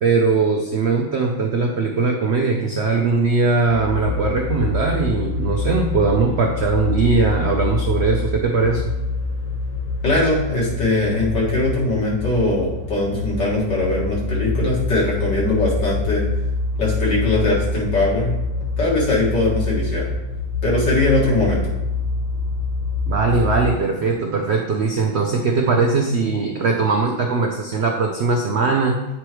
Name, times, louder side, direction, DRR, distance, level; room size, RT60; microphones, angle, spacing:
voice 1, 0.0-8.8 23.1-28.9, right 4 dB, 85° right, 1 dB, 0.5 m, -20 dB
sound 1, 3.7-23.6, left 3 dB, 65° left, 2.2 m, -25 dB
voice 2, 10.0-16.2 16.8-18.3 18.8-20.1 20.6-21.6, left 2 dB, 80° left, -6 dB, 2.6 m, -20 dB
8.6 x 4.7 x 3.0 m, 0.97 s
omnidirectional pair, 1.9 m